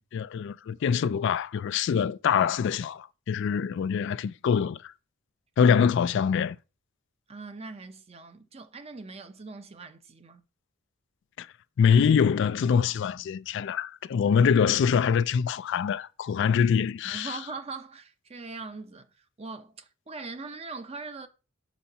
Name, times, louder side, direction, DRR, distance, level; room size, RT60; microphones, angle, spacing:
voice 1, 0.0-4.9 5.6-6.6 11.4-11.5 11.8-17.4, left 7 dB, 60° left, 0.3 m, -24 dB
voice 2, 7.3-10.4 17.0-19.1 19.4-21.3, right 3 dB, 30° right, 0.6 m, -41 dB
5.6 x 4.2 x 5.4 m
head